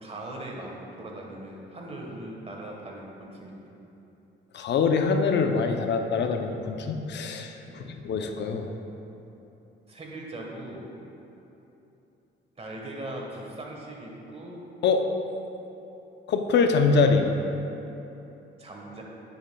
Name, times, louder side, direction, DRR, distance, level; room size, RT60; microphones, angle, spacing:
voice 1, 0.0-3.6 7.7-7.9 9.9-10.9 12.6-14.6 18.6-19.0, right 1 dB, 30° right, -1 dB, 1.4 m, -40 dB
voice 2, 4.5-8.7 14.8-15.0 16.3-17.3, left 4 dB, 60° left, 5 dB, 0.6 m, -24 dB
9.7 x 7.3 x 2.3 m, 2.9 s
cardioid pair, 90°, 20 cm